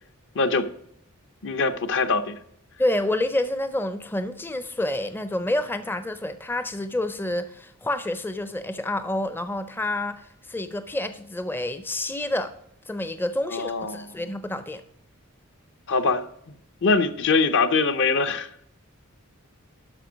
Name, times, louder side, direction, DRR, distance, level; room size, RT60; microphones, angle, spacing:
voice 1, 0.3-0.7 1.4-2.4 13.5-14.2 15.9-16.3 16.8-18.5, left 4 dB, 60° left, 0.7 m, -23 dB
voice 2, 2.8-12.5 12.9-14.8, left 1 dB, 10° left, 0.4 m, -28 dB
12.0 x 5.2 x 5.0 m
head